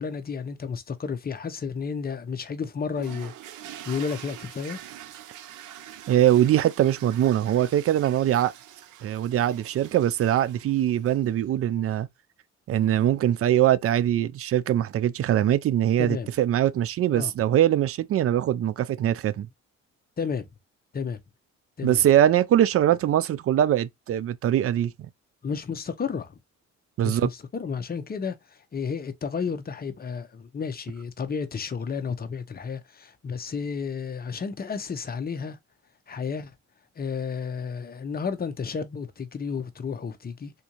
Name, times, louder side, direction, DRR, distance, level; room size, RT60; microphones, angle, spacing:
voice 1, 0.0-4.8 16.0-16.3 17.1-17.3 20.2-20.5 20.9-21.2 21.8-22.0 25.4-26.3 27.0-35.6 36.1-36.5 37.0-40.5, left 6 dB, 30° left, 0.7 m, -32 dB
sound 1, 2.9-11.4, right 11 dB, 85° right, 0.6 m, -45 dB
voice 2, 6.1-8.5 9.0-12.1 12.7-19.5 21.8-24.9 27.0-27.3, right 11 dB, 50° right, 0.4 m, -22 dB
3.7 x 2.6 x 2.9 m
cardioid pair, 90°, 30 cm